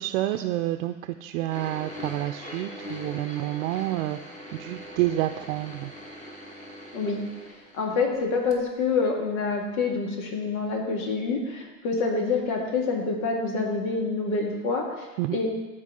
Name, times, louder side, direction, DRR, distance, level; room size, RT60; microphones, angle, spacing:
voice 1, 0.0-5.9 15.2-15.4, right 15 dB, 70° right, 7 dB, 0.6 m, -29 dB
sound 1, 1.5-8.2 8.5-8.6 9.4-9.5, left 1 dB, 15° left, 1.5 m, -41 dB
voice 2, 7.7-15.5, left 4 dB, 75° left, 1 dB, 2.1 m, -27 dB
13.5 x 4.7 x 3.8 m, 1.2 s
supercardioid pair, 115°, 42 cm